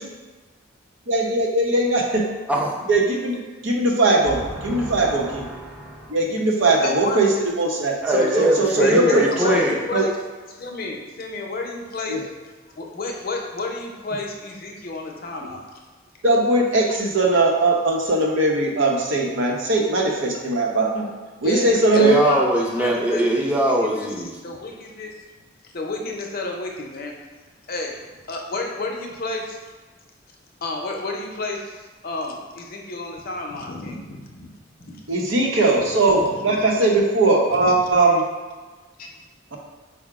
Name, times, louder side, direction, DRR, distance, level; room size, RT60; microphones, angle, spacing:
voice 1, 1.1-2.2 2.9-5.4 6.1-7.3 7.6-9.6 9.9-10.1 12.1-12.2 16.2-21.1 21.4-22.2 35.1-38.2, right 2 dB, 75° right, 0 dB, 0.7 m, -20 dB
voice 2, 4.5-6.1 8.0-9.8 22.0-24.3, right 1 dB, 5° right, -2 dB, 0.5 m, -22 dB
voice 3, 6.8-7.2 8.8-10.1 10.5-12.2 12.8-15.6 21.4-23.2 23.6-23.7 24.0-24.1 24.4-25.2 25.7-27.2 27.7-28.0 28.3-29.6 30.6-34.5 34.8-35.0 36.2-36.6 37.6-37.8 39.0-39.1, left 2 dB, 50° left, 1 dB, 0.6 m, -31 dB
4.7 x 2.1 x 4.7 m, 1.3 s
head